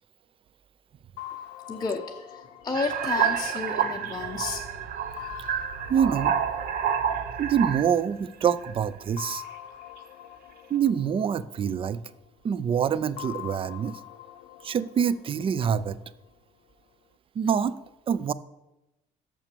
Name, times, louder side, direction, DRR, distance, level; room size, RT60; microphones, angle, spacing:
sound 1, 1.2-4.5 5.2-8.1 9.2-12.3 13.2-16.3, left 13 dB, 85° left, 0.6 m, -44 dB
voice 1, 1.7-4.8, left 4 dB, 25° left, 0 dB, 0.6 m, -32 dB
sound 2, 2.7-8.0 8.6-9.0, right 8 dB, 65° right, 0.8 m, -29 dB
voice 2, 5.9-6.4 7.4-9.4 10.7-12.0 12.4-14.0 14.6-16.0 17.4-17.7 18.1-18.3, right 8 dB, 30° right, 17 dB, 0.4 m, -25 dB
6.9 x 5.9 x 6.8 m, 0.99 s
cardioid pair, 110°, 17 cm